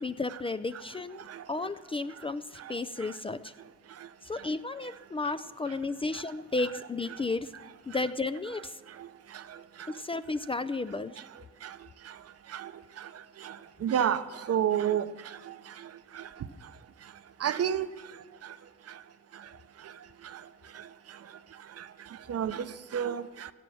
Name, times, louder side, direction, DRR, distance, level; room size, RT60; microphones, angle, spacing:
voice 1, 0.0-3.5 4.2-7.5 7.9-8.8 9.9-11.2, left 3 dB, 20° left, 0.4 m, -33 dB
voice 2, 13.8-14.2 14.5-15.0 17.4-17.9 22.3-22.6 22.9-23.2, right 9 dB, 55° right, 0.8 m, -27 dB
17.0 x 12.5 x 6.2 m
cardioid pair, 90°, 30 cm